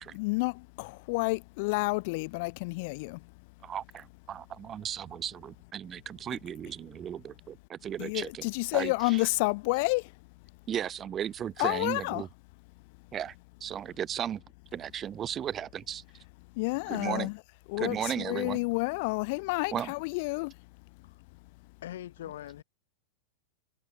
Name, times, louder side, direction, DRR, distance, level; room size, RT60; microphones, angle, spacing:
voice 1, 0.1-3.2 8.0-10.1 11.6-12.2 16.6-17.4 17.7-20.5, left 27 dB, 55° left, 0.4 m, -30 dB
voice 2, 3.6-8.5 8.7-9.3 10.7-12.3 13.1-13.3 13.6-14.4 14.7-16.0 16.9-17.3 17.8-18.6 19.7-19.9, right 9 dB, 25° right, 0.4 m, -35 dB
voice 3, 21.8-22.6, left 12 dB, 75° left, 1.8 m, -42 dB
hypercardioid pair, 130°, 0 cm